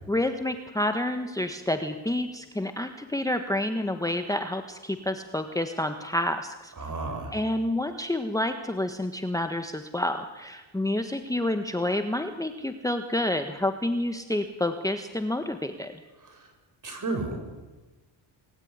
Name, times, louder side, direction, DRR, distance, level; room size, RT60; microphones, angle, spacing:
voice 1, 0.1-6.7 7.3-15.9, left 1 dB, 5° left, 7 dB, 1.5 m, -29 dB
voice 2, 6.8-7.4 16.2-16.4 16.8-17.4, right 3 dB, 40° right, 5 dB, 7.6 m, -32 dB
27.5 x 20.0 x 9.8 m, 1.2 s
cardioid pair, 110°, 48 cm